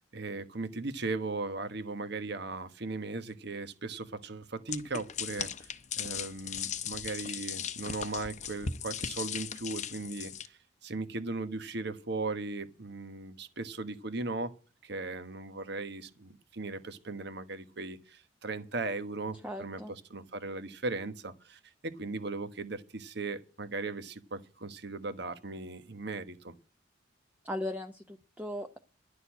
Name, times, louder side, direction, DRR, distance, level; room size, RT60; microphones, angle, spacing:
voice 1, 0.1-5.7 6.0-14.5 14.8-26.5, right 3 dB, 60° right, 11 dB, 1.3 m, -38 dB
sound 1, 4.7-10.5, left 7 dB, 40° left, 0.8 m, -38 dB
voice 2, 19.4-19.9 27.4-28.8, left 1 dB, 10° right, 5 dB, 0.8 m, -38 dB
11.5 x 6.8 x 8.4 m, 0.36 s
head